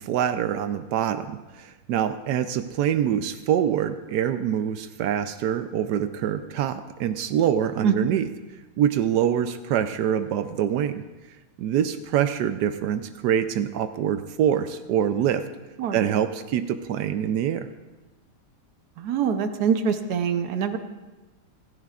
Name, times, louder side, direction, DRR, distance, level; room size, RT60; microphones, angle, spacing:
voice 1, 0.0-8.3 8.8-11.0 11.6-15.4 15.9-17.7, right 9 dB, 85° right, 9 dB, 0.9 m, -25 dB
voice 2, 19.0-20.8, right 7 dB, 60° right, 8 dB, 1.1 m, -24 dB
26.0 x 11.0 x 2.4 m, 1.1 s
omnidirectional pair, 2.4 m